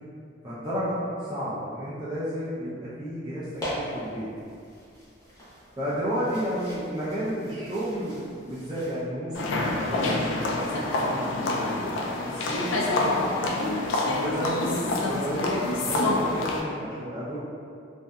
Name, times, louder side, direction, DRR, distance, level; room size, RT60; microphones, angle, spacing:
voice 1, 0.4-1.0 1.3-4.3 5.8-11.2 11.5-13.5 14.1-17.4, equal, 20° right, -11 dB, 0.4 m, -32 dB
sound 1, 3.5-9.0, equal, 20° left, 0.6 m, -40 dB
sound 2, 9.3-16.6, left 2 dB, 80° left, 0.3 m, -27 dB
2.6 x 2.5 x 2.2 m, 2.4 s
head